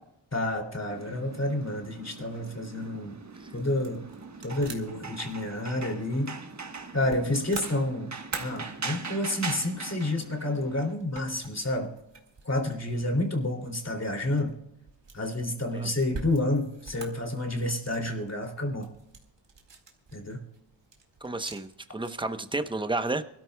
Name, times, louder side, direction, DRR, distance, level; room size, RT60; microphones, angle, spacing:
voice 1, 0.3-3.2 3.5-4.0 4.4-6.4 6.9-8.1 8.4-11.9 12.4-14.5 15.1-18.9 20.1-20.4, left 1 dB, 35° left, 2 dB, 2.9 m, -29 dB
sound 1, 0.9-10.9, right 4 dB, 40° right, 1.3 m, -41 dB
sound 2, 3.5-22.4, right 4 dB, 65° right, 2.1 m, -47 dB
voice 2, 21.2-23.2, right 2 dB, 10° right, 9 dB, 0.9 m, -31 dB
24.5 x 13.0 x 2.3 m, 0.89 s
cardioid pair, 70°, 45 cm